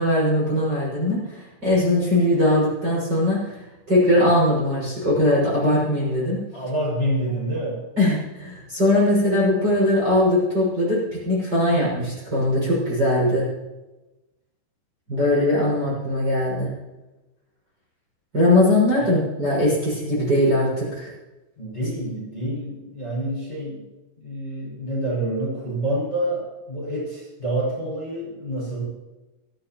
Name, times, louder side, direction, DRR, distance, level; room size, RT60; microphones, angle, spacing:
voice 1, 0.0-3.6 3.9-6.4 8.0-13.5 15.1-16.7 18.3-21.1, left 1 dB, 20° right, -6 dB, 6.7 m, -20 dB
voice 2, 6.5-7.9 19.0-19.3 21.6-23.9 24.2-28.9, right 1 dB, 10° left, -6 dB, 6.7 m, -27 dB
24.0 x 14.0 x 3.1 m, 1.1 s
omnidirectional pair, 5.8 m